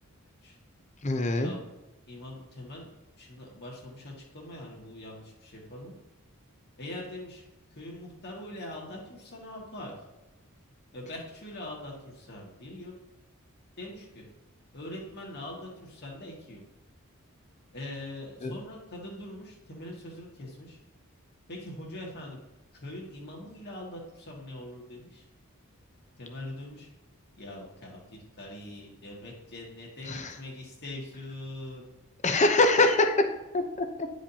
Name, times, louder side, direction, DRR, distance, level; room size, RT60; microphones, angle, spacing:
voice 1, 1.0-1.5 18.4-18.6 30.1-30.3 32.2-33.3 33.5-33.9, left 2 dB, 35° left, 6 dB, 0.7 m, -23 dB
voice 2, 2.1-2.9 3.2-5.9 6.8-7.4 7.7-9.9 10.9-12.9 13.8-14.3 14.7-16.6 17.7-20.8 21.5-22.4 22.7-25.3 26.2-26.9 27.3-31.8, left 1 dB, 50° left, -1 dB, 1.9 m, -42 dB
10.5 x 5.0 x 2.8 m, 0.99 s
head